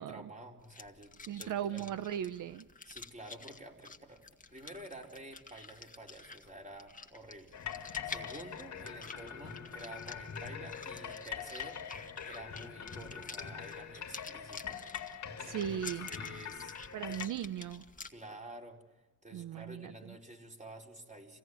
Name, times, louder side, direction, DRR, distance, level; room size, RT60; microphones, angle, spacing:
voice 1, 0.0-1.9 2.9-7.6 8.0-11.9 12.2-14.8 15.4-15.8 16.1-17.2 18.1-18.8 19.2-21.4, right 1 dB, 25° right, 1 dB, 4.5 m, -50 dB
sound 1, 0.6-18.1, left 3 dB, 25° left, 1.8 m, -50 dB
voice 2, 1.3-2.7 15.4-16.1 16.9-17.8 19.3-20.2, right 10 dB, 80° right, 12 dB, 0.8 m, -38 dB
sound 2, 7.5-17.3, left 8 dB, 60° left, 2.3 m, -43 dB
26.0 x 17.0 x 9.6 m, 1.2 s
cardioid pair, 65°, 31 cm